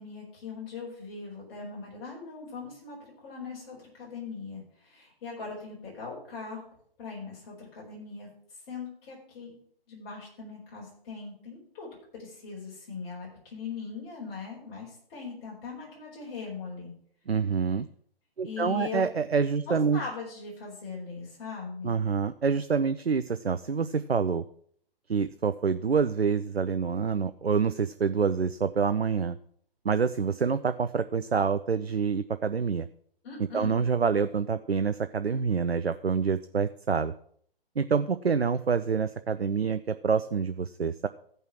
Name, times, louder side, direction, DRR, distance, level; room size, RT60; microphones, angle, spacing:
voice 1, 0.0-6.7 7.0-8.3 8.7-9.5 9.9-16.9 18.4-19.1 19.7-22.0 33.2-33.8, left 5 dB, 25° left, -4 dB, 4.3 m, -40 dB
voice 2, 17.3-17.9 18.4-20.0 21.8-24.4 25.1-29.4 29.8-32.9 33.5-37.1 37.8-41.1, right 5 dB, 90° right, 12 dB, 0.6 m, -27 dB
14.5 x 5.5 x 6.0 m, 0.63 s
figure-of-eight pair, 135°, 30 cm